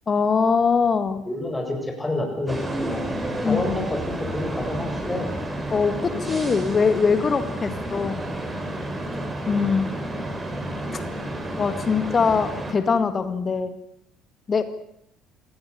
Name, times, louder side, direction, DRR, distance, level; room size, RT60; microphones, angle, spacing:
voice 1, 0.1-1.3 3.4-3.6 5.7-8.2 9.5-10.0 10.9-11.0 11.6-13.8 14.5-14.6, left 5 dB, 30° left, 11 dB, 2.1 m, -22 dB
voice 2, 1.2-3.1 3.4-5.3, left 2 dB, 10° left, 3 dB, 7.7 m, -28 dB
sound 1, 2.5-12.7, right 1 dB, 15° right, 4.9 m, -30 dB
28.0 x 18.5 x 6.9 m, 0.75 s
figure-of-eight pair, 55°, 0 cm